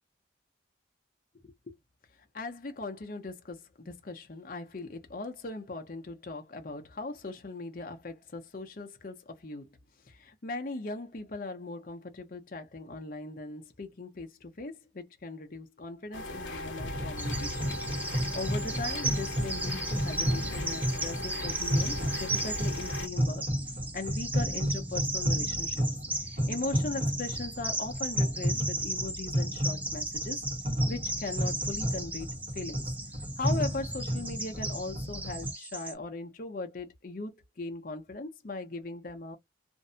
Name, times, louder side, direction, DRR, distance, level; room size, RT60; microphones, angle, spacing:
voice 1, 2.3-9.7 10.1-17.8 18.3-23.5 23.9-25.8 26.3-30.4 30.8-32.3 32.5-32.9 33.4-39.4, left 2 dB, 45° left, 0.6 m, -39 dB
sound 1, 16.1-23.1, left 2 dB, 85° left, 0.8 m, -38 dB
sound 2, 16.8-35.5, equal, 45° right, 1.0 m, -33 dB
Bird vocalization bird call bird song, 17.2-35.9, right 2 dB, 10° right, 0.4 m, -36 dB
2.6 x 2.1 x 2.6 m
head